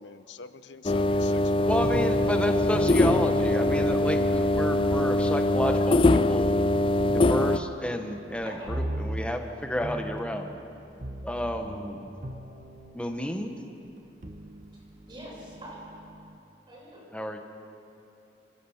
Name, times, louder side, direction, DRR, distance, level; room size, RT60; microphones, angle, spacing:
voice 1, 0.0-2.1, left 4 dB, 85° left, 14 dB, 0.7 m, -45 dB
sound 1, 0.8-7.6, left 1 dB, 30° left, 0.4 m, -23 dB
voice 2, 1.7-6.6 7.1-10.5 11.2-12.0 12.9-13.5 17.1-17.4, equal, 5° left, 4 dB, 1.2 m, -31 dB
sound 2, 1.8-13.3 14.0-16.4, right 1 dB, 45° right, 1.1 m, -39 dB
voice 3, 8.4-8.9 14.2-15.9 16.7-17.0, right 1 dB, 25° right, -4 dB, 6.4 m, -45 dB
26.5 x 14.5 x 7.3 m, 2.9 s
head